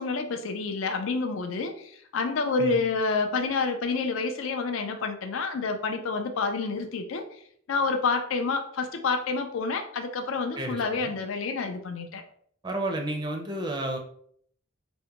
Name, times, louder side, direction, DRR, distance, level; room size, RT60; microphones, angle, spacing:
voice 1, 0.0-7.3 7.7-12.2, left 4 dB, 80° left, 6 dB, 0.4 m, -28 dB
voice 2, 10.6-11.1 12.6-14.0, right 1 dB, 20° right, 3 dB, 0.4 m, -31 dB
3.4 x 2.1 x 2.8 m, 0.63 s
head